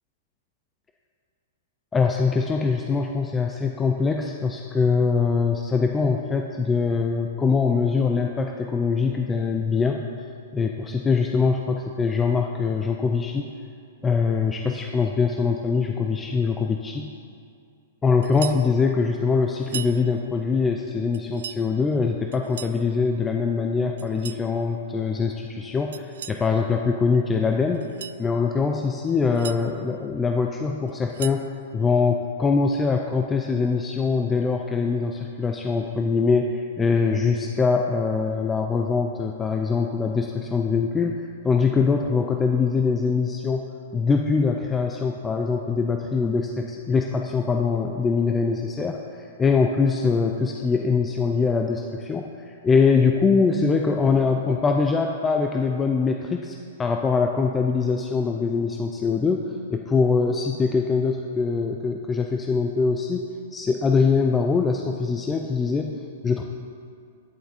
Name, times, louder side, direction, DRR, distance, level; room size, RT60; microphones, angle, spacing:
voice 1, 1.9-10.0 10.5-13.5 14.0-17.1 18.0-27.9 28.2-66.4, left 5 dB, 10° left, 3 dB, 0.4 m, -23 dB
sound 1, 18.2-18.7 19.6-20.0 21.1-21.6 22.3-22.8 24.0-24.5 25.9-26.4 27.7-28.2 29.1-29.6 30.9-31.5, right 9 dB, 70° right, 0.3 m, -37 dB
10.0 x 7.9 x 4.2 m, 2.3 s
hypercardioid pair, 155°, 0 cm